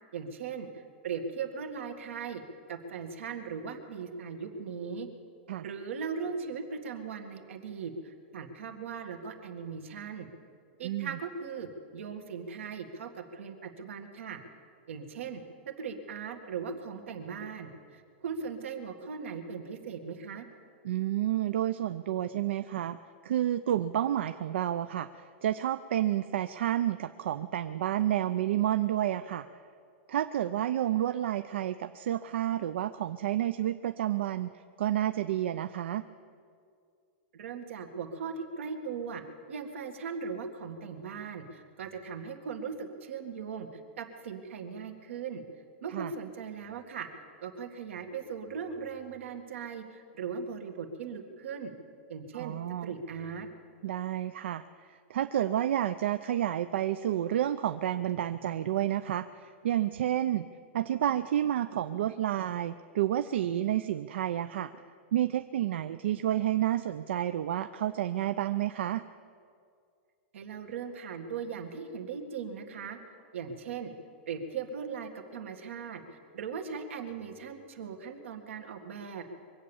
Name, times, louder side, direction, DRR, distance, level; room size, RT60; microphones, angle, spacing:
voice 1, 0.1-2.4 2.7-5.1 5.6-10.3 10.8-14.4 14.9-15.4 15.8-20.5 37.3-39.2 39.5-45.4 45.8-47.1 47.4-51.7 52.1-53.5 70.3-73.0 73.3-73.9 74.3-76.0 76.3-79.2, right 6 dB, 85° right, 5 dB, 1.9 m, -39 dB
voice 2, 10.8-11.2 20.8-23.0 23.2-29.5 30.1-36.0 45.9-46.1 52.3-52.9 53.8-60.5 60.7-64.7 65.1-69.0, right 12 dB, 70° right, 11 dB, 0.4 m, -30 dB
23.5 x 8.6 x 7.1 m, 2.3 s
supercardioid pair, 175°, 7 cm